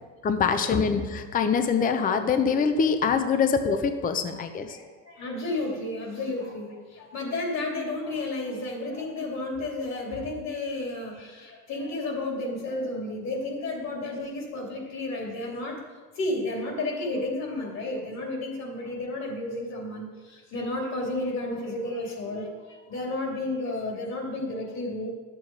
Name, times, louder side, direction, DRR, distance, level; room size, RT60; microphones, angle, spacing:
voice 1, 0.2-4.8, left 6 dB, 25° left, 9 dB, 0.7 m, -24 dB
voice 2, 4.7-15.8 16.1-25.1, left 2 dB, 50° left, 0 dB, 3.0 m, -32 dB
11.5 x 7.8 x 4.7 m, 1.4 s
supercardioid pair, 120°, 36 cm